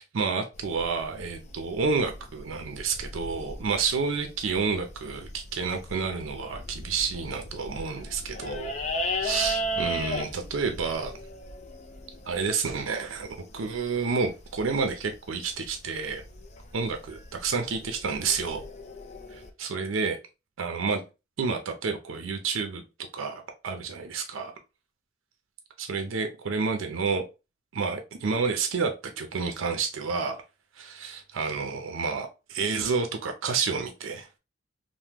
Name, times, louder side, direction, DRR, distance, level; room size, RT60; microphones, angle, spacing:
voice 1, 0.0-8.7 9.2-11.1 12.2-13.3 13.5-16.2 16.7-18.7 19.3-20.2 20.6-21.0 21.4-22.8 23.1-24.5 25.8-27.2 27.7-30.4 30.8-34.3, right 5 dB, 85° right, 0.5 m, -29 dB
sound 1, 0.5-19.5, equal, 35° left, 0.4 m, -37 dB
2.9 x 2.1 x 3.3 m
head